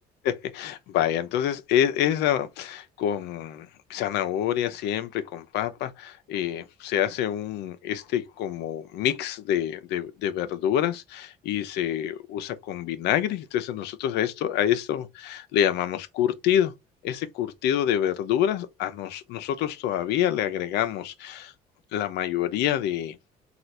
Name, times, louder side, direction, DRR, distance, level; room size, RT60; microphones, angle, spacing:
voice 1, 0.2-16.7 17.0-21.5 21.9-23.2, left 10 dB, 85° left, 0.7 m, -27 dB
3.9 x 2.5 x 4.4 m
cardioid pair, 110°, 17 cm